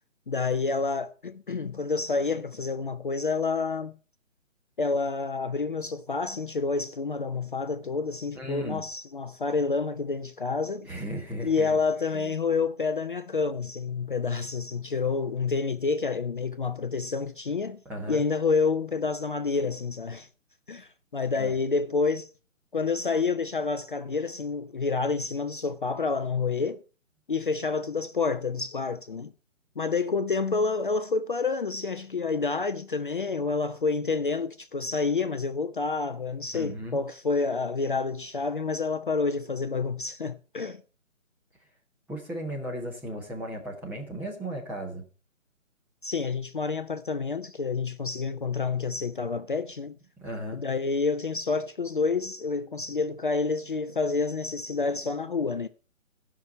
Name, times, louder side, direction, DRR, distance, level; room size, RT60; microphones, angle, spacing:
voice 1, 0.3-3.9 4.8-10.9 11.4-17.8 18.1-20.3 20.7-22.3 22.7-26.8 27.3-29.3 29.8-40.8 46.0-50.0 50.5-55.7, left 4 dB, 40° left, 0.5 m, -28 dB
voice 2, 8.3-8.8 10.8-11.8 12.1-12.3 17.8-18.2 21.3-21.5 36.5-37.0 42.1-45.0 50.2-50.6, right 1 dB, 5° right, 1.3 m, -36 dB
15.0 x 6.0 x 5.4 m
figure-of-eight pair, 145°, 40 cm